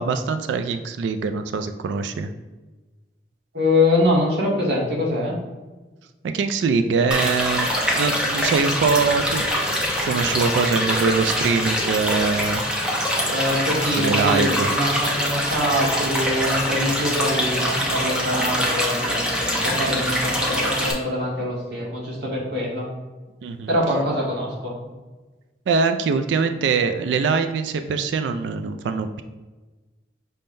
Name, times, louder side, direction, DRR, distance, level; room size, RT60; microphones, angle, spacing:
voice 1, 0.0-2.3 6.2-9.6 10.0-12.6 14.0-14.7 23.4-23.7 25.7-29.2, right 5 dB, 85° right, 8 dB, 0.3 m, -23 dB
voice 2, 3.5-5.3 13.2-19.2 19.6-22.8 23.7-24.8, left 1 dB, 70° right, -4 dB, 1.4 m, -24 dB
sound 1, 7.1-20.9, equal, 5° right, 0.8 m, -24 dB
5.4 x 3.6 x 2.6 m, 1.2 s
head